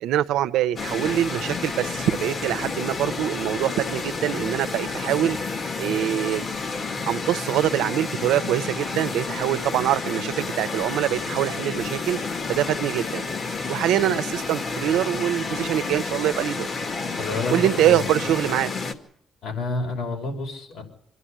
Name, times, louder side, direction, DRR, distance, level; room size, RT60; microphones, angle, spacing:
voice 1, 0.0-5.4 5.8-6.4 7.1-12.2 12.5-13.3 13.7-16.7 17.5-18.7, right 12 dB, 90° right, 12 dB, 0.8 m, -24 dB
sound 1, 0.8-18.9, left 4 dB, 45° left, 2.1 m, -30 dB
voice 2, 17.2-18.3 19.4-20.8, left 3 dB, 75° left, 3 dB, 5.7 m, -30 dB
25.0 x 11.0 x 10.0 m, 0.74 s
cardioid pair, 90°, 0 cm